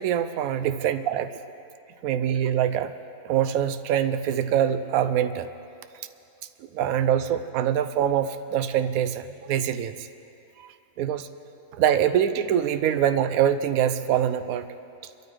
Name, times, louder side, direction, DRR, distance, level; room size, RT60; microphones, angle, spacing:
voice 1, 0.0-1.4 2.0-2.9 3.2-5.5 6.7-10.1 10.6-11.3 11.7-14.7, right 9 dB, 75° right, 10 dB, 1.0 m, -24 dB
23.0 x 13.5 x 3.4 m, 2.7 s
omnidirectional pair, 1.5 m